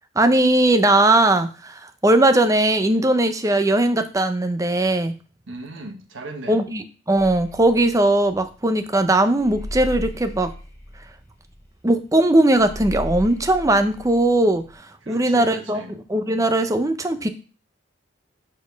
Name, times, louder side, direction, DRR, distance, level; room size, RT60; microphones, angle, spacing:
voice 1, 0.2-5.1 6.5-10.5 11.8-14.6 15.1-17.3, right 1 dB, 15° right, 9 dB, 0.6 m, -19 dB
voice 2, 5.5-6.6 15.0-15.9, right 2 dB, 80° right, 4 dB, 1.1 m, -36 dB
sound 1, 7.2-14.7, equal, 15° left, 1.1 m, -35 dB
5.2 x 4.2 x 5.2 m, 0.35 s
head